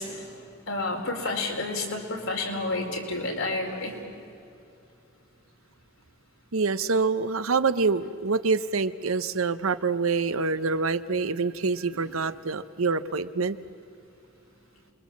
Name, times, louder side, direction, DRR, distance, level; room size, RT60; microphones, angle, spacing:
voice 1, 0.0-3.9 11.9-12.0, left 2 dB, 85° left, 0 dB, 4.8 m, -30 dB
voice 2, 6.5-13.6, right 4 dB, 90° right, 12 dB, 0.9 m, -26 dB
29.0 x 22.5 x 7.4 m, 2.6 s
head